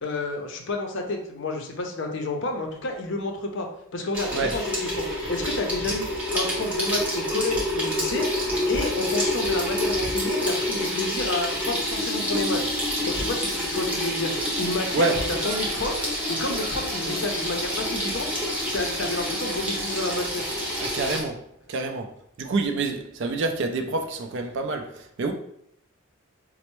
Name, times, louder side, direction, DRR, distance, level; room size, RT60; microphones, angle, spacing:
voice 1, 0.0-3.7 3.9-6.1 6.3-8.3 8.7-12.6 13.0-14.3 14.6-15.9 16.3-18.3 18.7-20.5, left 2 dB, 55° left, 0.5 m, -30 dB
Water tap faucet / Sink (filling or washing), 4.1-21.2, left 1 dB, 5° right, 0.6 m, -27 dB
sound 1, 14.3-21.3, right 1 dB, 85° right, 0.8 m, -42 dB
voice 2, 20.8-21.4 21.7-22.1 22.4-25.3, right 3 dB, 55° right, 0.4 m, -27 dB
4.2 x 2.0 x 3.0 m
head